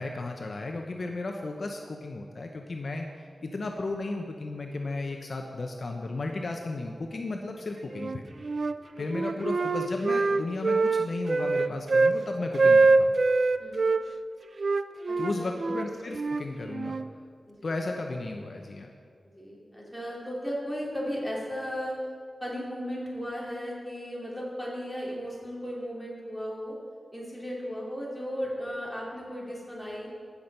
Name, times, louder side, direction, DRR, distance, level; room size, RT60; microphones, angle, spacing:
voice 1, 0.0-8.2 9.0-13.1 15.2-17.0 17.6-18.9, left 2 dB, 55° left, 3 dB, 0.7 m, -34 dB
Wind instrument woodwind instrument, 7.9-8.8 9.1-12.2 12.5-14.0 14.6-17.1, right 3 dB, 50° right, 0.3 m, -24 dB
voice 2, 13.6-14.0 15.3-15.8 17.5-17.7 19.4-22.0 22.4-26.7 27.1-30.1, equal, ahead, -5 dB, 2.9 m, -35 dB
15.5 x 6.0 x 5.4 m, 2.1 s
wide cardioid pair, 130°, 0 cm